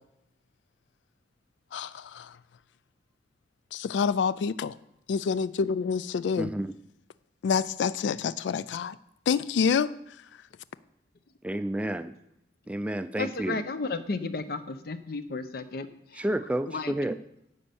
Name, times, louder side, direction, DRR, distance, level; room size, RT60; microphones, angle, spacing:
voice 1, 1.7-2.4 3.7-4.8 5.1-6.5 7.4-9.0 9.3-9.9, left 6 dB, 90° left, 17 dB, 0.3 m, -27 dB
voice 2, 6.4-6.7 11.4-12.1 12.7-13.6 16.1-17.2, right 1 dB, 5° right, 11 dB, 0.3 m, -30 dB
voice 3, 13.2-15.9 16.1-16.2 16.7-16.9, left 3 dB, 60° left, 11 dB, 0.7 m, -33 dB
9.6 x 5.3 x 7.1 m, 0.80 s
head